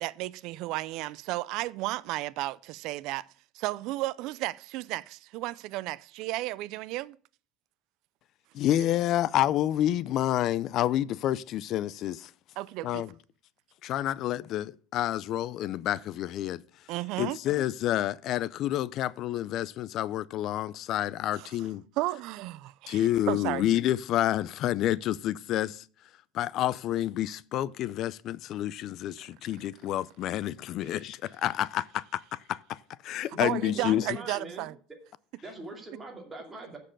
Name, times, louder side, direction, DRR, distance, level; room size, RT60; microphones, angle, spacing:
voice 1, 0.0-3.2 3.6-5.0 5.3-7.1 12.6-13.0 16.9-17.4 21.4-21.5 22.0-23.0 23.3-23.6 33.4-34.7, right 18 dB, 55° right, 0.4 m, -33 dB
voice 2, 8.5-12.3 12.8-13.1 13.8-16.6 17.2-21.8 22.9-25.8 26.3-32.2 32.5-32.6 33.0-34.2, left 12 dB, 45° left, 0.4 m, -29 dB
voice 3, 33.3-34.7 35.4-36.8, right 2 dB, 15° right, 2.5 m, -43 dB
7.5 x 6.6 x 7.5 m
cardioid pair, 155°, 0 cm